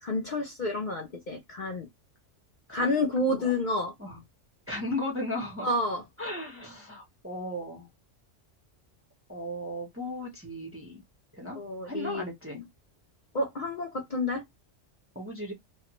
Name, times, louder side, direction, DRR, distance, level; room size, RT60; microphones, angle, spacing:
voice 1, 0.0-1.9 2.7-3.9 5.6-6.0 11.6-12.2 12.5-12.7 13.3-14.4, left 2 dB, 50° left, 0.6 m, -29 dB
voice 2, 2.7-3.0 3.3-3.5 4.0-4.2 4.7-5.7 6.2-7.9 9.3-11.0 11.3-11.6 11.9-12.6 15.1-15.5, left 1 dB, 15° right, 0.6 m, -36 dB
3.1 x 2.1 x 2.9 m
omnidirectional pair, 1.2 m